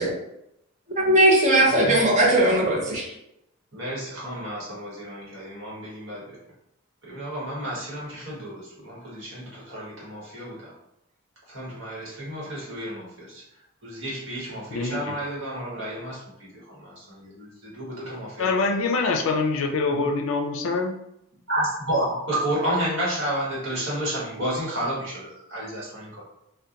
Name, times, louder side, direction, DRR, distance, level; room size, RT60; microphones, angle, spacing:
voice 1, 1.0-3.1, right 1 dB, 35° right, -3 dB, 0.6 m, -19 dB
voice 2, 3.7-6.2 7.0-10.7 11.5-13.4 13.8-18.5 19.9-20.0 21.5-26.2, right 1 dB, 60° right, -6 dB, 1.1 m, -31 dB
voice 3, 14.7-15.2 18.4-20.9, left 4 dB, 70° left, 4 dB, 0.4 m, -25 dB
2.7 x 2.2 x 2.4 m, 0.81 s
head